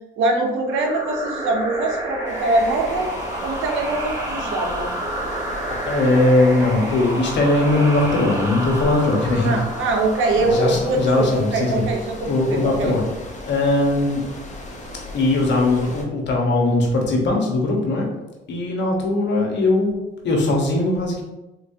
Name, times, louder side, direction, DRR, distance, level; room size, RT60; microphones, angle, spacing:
voice 1, 0.2-3.1 3.4-4.9 9.4-12.9, right 2 dB, 80° right, 2 dB, 0.8 m, -23 dB
sound 1, 0.7-12.0, right 1 dB, 15° right, 0.9 m, -30 dB
sound 2, 2.2-16.0, left 1 dB, 35° left, 0.8 m, -37 dB
voice 2, 5.9-9.6 10.4-11.8 12.2-13.0 13.4-14.2 15.1-18.0 18.5-20.0 20.2-21.2, left 2 dB, 65° left, 0 dB, 1.0 m, -19 dB
3.7 x 3.2 x 2.7 m, 0.99 s
cardioid pair, 90°, 20 cm